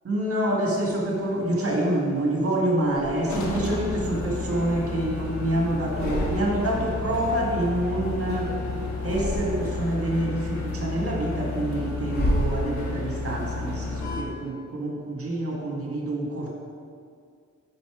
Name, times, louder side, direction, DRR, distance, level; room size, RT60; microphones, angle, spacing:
voice 1, 0.0-8.6 9.0-16.5, right 1 dB, 50° right, -2 dB, 1.7 m, -27 dB
sound 1, 0.9-2.1 2.8-3.7 4.2-5.4 5.8-6.9 7.1-8.5 8.9-9.9 10.4-13.2, equal, 35° left, 1.3 m, -33 dB
sound 2, 3.3-14.2, left 3 dB, 65° left, 1.3 m, -32 dB
9.6 x 5.3 x 4.8 m, 2.2 s
cardioid pair, 90°, 30 cm